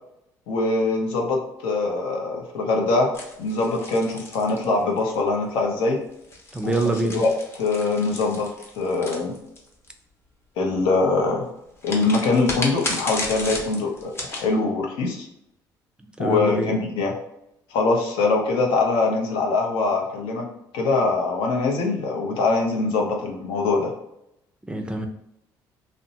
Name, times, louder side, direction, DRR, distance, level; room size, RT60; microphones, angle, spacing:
voice 1, 0.5-3.1 3.4-6.0 6.6-6.7 7.0-7.3 7.6-8.5 8.8-9.3 10.6-11.5 11.8-15.3 16.2-17.1 17.7-20.5 20.7-23.9, left 3 dB, 85° left, 1 dB, 0.6 m, -23 dB
sound 1, 3.1-5.1 6.1-9.9 11.8-14.5, left 2 dB, 30° left, 0.7 m, -33 dB
voice 2, 6.5-7.2 16.0-16.8 24.7-25.1, right 2 dB, 10° right, 4 dB, 0.4 m, -25 dB
2.5 x 2.0 x 2.7 m, 0.82 s
cardioid pair, 90°, 9 cm